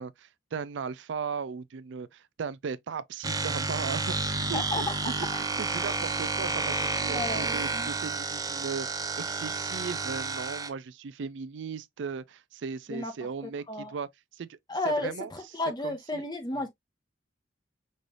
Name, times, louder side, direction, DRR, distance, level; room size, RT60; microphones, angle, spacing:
voice 1, 0.0-5.1 5.6-14.6 14.8-15.3 15.8-16.3 16.5-16.7, right 5 dB, 70° right, 0.4 m, -37 dB
sound 1, 3.2-10.7, right 3 dB, 20° right, 0.6 m, -31 dB
voice 2, 4.5-4.9 5.3-5.5 7.1-7.9 12.9-13.1 13.7-13.9 14.7-16.7, left 2 dB, 20° left, 1.0 m, -33 dB
5.3 x 3.2 x 2.4 m
head